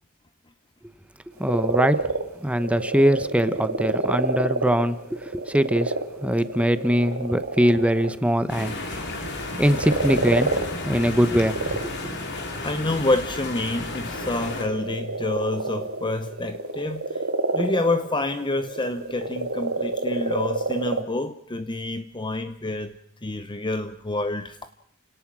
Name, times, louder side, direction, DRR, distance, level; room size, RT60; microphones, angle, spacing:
voice 1, 1.4-2.0 2.4-5.0 5.3-5.9 6.2-9.0 9.6-10.5 10.8-11.6, equal, 5° right, 12 dB, 1.0 m, -22 dB
sound 1, 1.4-8.1 9.6-10.6 11.3-12.0 12.3-12.4 14.1-21.0, right 3 dB, 75° right, 2.4 m, -28 dB
sound 2, 8.5-14.6, left 2 dB, 55° left, 4.2 m, -32 dB
voice 2, 12.6-17.2 17.5-24.7, left 2 dB, 20° left, 10 dB, 0.8 m, -28 dB
29.5 x 18.0 x 6.2 m, 0.67 s
head